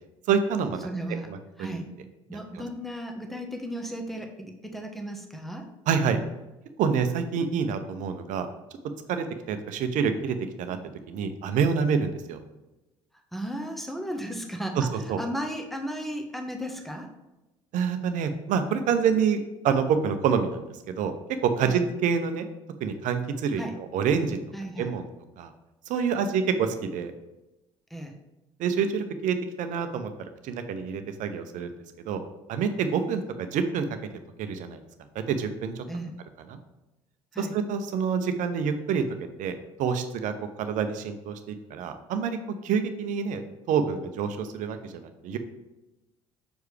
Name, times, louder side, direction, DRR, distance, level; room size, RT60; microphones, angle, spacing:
voice 1, 0.3-0.9 1.3-1.4 1.7-1.8 2.3-2.6 5.9-6.2 6.8-8.5 9.1-10.8 11.1-12.4 14.8-15.2 17.7-21.1 21.4-22.5 22.8-23.6 23.9-24.4 24.8-25.0 25.4-25.5 25.9-27.1 28.6-30.1 30.4-31.8 32.1-32.2 32.5-33.9 34.4-34.8 35.1-35.8 36.5-36.6 37.4-39.0 39.4-40.3 40.6-42.4 42.6-43.4 43.7-45.4, right 6 dB, 55° right, 8 dB, 0.8 m, -27 dB
voice 2, 0.8-1.3 1.6-1.9 2.3-5.7 13.3-17.1 21.6-21.8 23.6-23.8 24.5-24.9 27.9-28.2 35.9-36.1 37.3-37.6, equal, ahead, 3 dB, 1.1 m, -35 dB
6.8 x 4.7 x 3.3 m, 1.0 s
hypercardioid pair, 60°, 15 cm